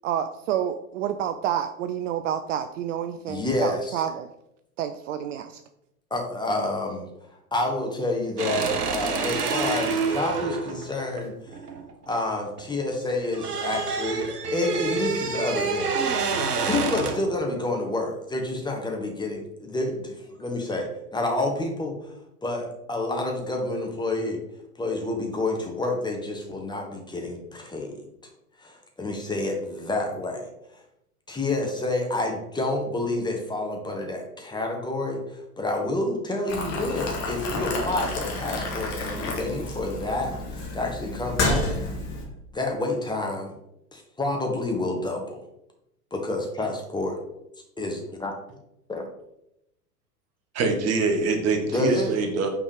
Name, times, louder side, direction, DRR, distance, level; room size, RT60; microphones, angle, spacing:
voice 1, 0.0-4.3 4.8-5.6, right 9 dB, 55° right, 9 dB, 0.6 m, -29 dB
voice 2, 3.3-4.0 6.1-7.1 7.5-11.3 12.1-16.2 16.6-21.9 22.4-24.4 24.8-28.0 28.6-30.5 31.3-41.7 42.5-43.5 43.9-45.4 46.1-47.2 47.8-48.3 48.9-49.0 51.7-52.1, left 2 dB, 10° left, 1 dB, 1.4 m, -29 dB
sound 1, 8.4-12.6 12.9-17.3, right 4 dB, 85° right, 1.0 m, -28 dB
Boiling, 36.5-42.3, left 2 dB, 35° left, 1.8 m, -30 dB
voice 3, 50.6-52.5, right 3 dB, 35° right, 4 dB, 1.5 m, -24 dB
6.0 x 4.6 x 5.0 m, 0.82 s
figure-of-eight pair, 90°, 45 cm